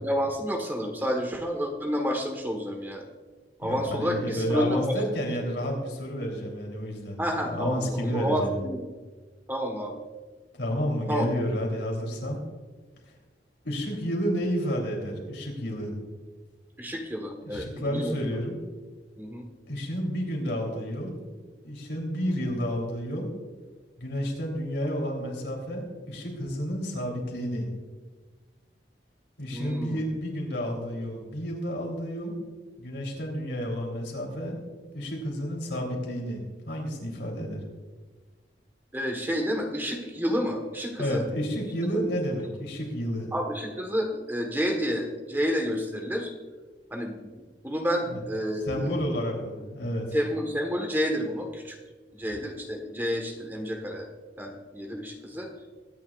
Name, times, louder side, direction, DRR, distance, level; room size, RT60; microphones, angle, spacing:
voice 1, 0.0-3.1 3.6-5.0 7.2-8.8 9.5-10.0 11.1-11.3 16.8-18.2 19.2-19.4 29.5-30.0 38.9-41.2 41.9-42.0 43.3-46.3 46.9-47.3 47.6-49.0 50.1-51.8 52.1-54.1 54.4-55.5, equal, 10° right, 2 dB, 1.3 m, -30 dB
voice 2, 3.6-8.7 10.6-12.4 13.6-15.9 17.4-18.5 19.7-21.3 21.6-23.3 24.0-27.7 29.4-32.4 32.8-34.6 34.9-37.6 41.0-43.3 48.1-48.2 48.7-50.1, equal, 85° left, 0 dB, 3.5 m, -30 dB
22.0 x 9.7 x 2.5 m, 1.4 s
head